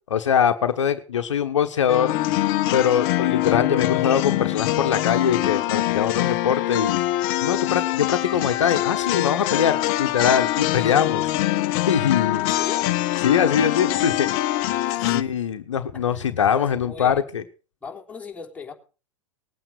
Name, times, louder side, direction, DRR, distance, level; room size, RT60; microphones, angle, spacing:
voice 1, 0.1-2.1 2.7-7.0 7.4-11.3 11.9-12.4 13.2-14.3 15.1-17.4, left 8 dB, 70° left, 8 dB, 1.2 m, -22 dB
sound 1, 1.9-15.2, left 15 dB, 45° left, 1.0 m, -24 dB
voice 2, 12.4-12.9 14.9-15.3 15.9-16.2 16.5-17.2 17.8-18.7, left 5 dB, 10° left, 0 dB, 3.7 m, -39 dB
19.0 x 8.9 x 6.4 m, 0.37 s
figure-of-eight pair, 90°, 16 cm